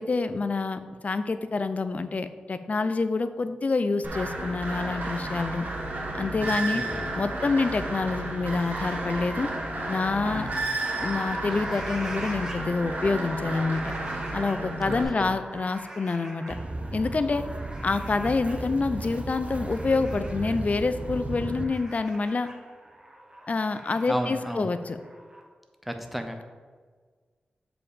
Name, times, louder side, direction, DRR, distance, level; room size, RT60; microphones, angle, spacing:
voice 1, 0.0-5.6 6.2-6.8 7.1-9.5 9.9-10.5 10.9-13.9 14.3-16.6 16.9-17.5 17.8-22.5 23.5-25.0, left 3 dB, 45° left, 11 dB, 0.5 m, -27 dB
sound 1, 4.0-15.0, right 2 dB, 60° right, 1.6 m, -32 dB
voice 2, 6.4-7.1 10.3-10.6 14.8-15.3 24.1-24.7 25.8-26.4, equal, ahead, 6 dB, 0.8 m, -34 dB
sound 2, 8.4-25.4, right 1 dB, 15° right, 1.4 m, -43 dB
sound 3, 16.5-21.6, right 2 dB, 40° right, 0.6 m, -35 dB
7.1 x 4.9 x 4.9 m, 1.6 s
wide cardioid pair, 75°, 3 cm